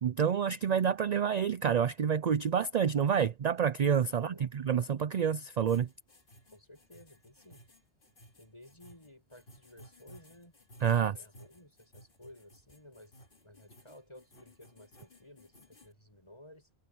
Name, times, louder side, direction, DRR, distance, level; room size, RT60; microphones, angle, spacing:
voice 1, 0.0-5.9 10.8-11.1, right 7 dB, 50° right, 0.6 m, -28 dB
voice 2, 4.1-4.5 6.5-7.6 8.4-10.5 10.9-16.7, left 1 dB, 30° left, 7.6 m, -55 dB
sound 1, 5.7-15.9, equal, 60° left, 2.6 m, -58 dB
omnidirectional pair, 1.1 m